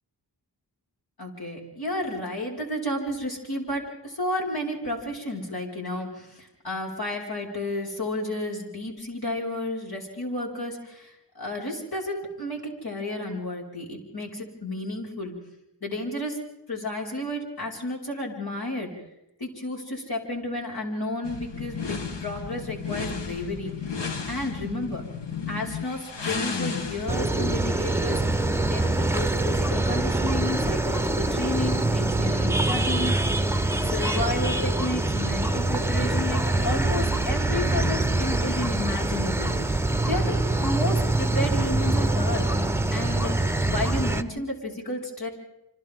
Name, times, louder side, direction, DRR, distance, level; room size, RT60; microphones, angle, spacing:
voice 1, 1.2-15.4 15.8-16.4 16.7-18.9 19.4-23.7 24.3-25.0 25.5-28.2 28.7-33.2 33.8-39.8 40.1-43.3 43.6-45.3, left 1 dB, 60° left, -1 dB, 5.5 m, -32 dB
sound 1, 21.2-28.8, left 5 dB, 90° left, 1.6 m, -34 dB
sound 2, 27.1-44.2, right 2 dB, 5° right, 1.0 m, -24 dB
27.5 x 26.0 x 3.8 m, 0.87 s
cardioid pair, 50°, 41 cm